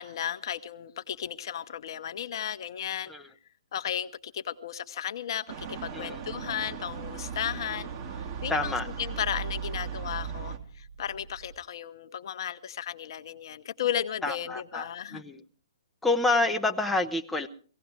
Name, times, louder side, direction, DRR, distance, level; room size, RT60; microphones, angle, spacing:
voice 1, 0.0-3.1 3.7-15.2, left 9 dB, 55° left, 1.0 m, -35 dB
sound 1, 5.5-10.6, right 7 dB, 40° right, 2.2 m, -37 dB
sound 2, 5.6-11.5, right 4 dB, 65° right, 3.8 m, -49 dB
voice 2, 8.5-8.9 14.2-15.4 16.0-17.5, left 2 dB, 5° left, 0.8 m, -28 dB
17.0 x 17.0 x 4.8 m
hypercardioid pair, 135°, 3 cm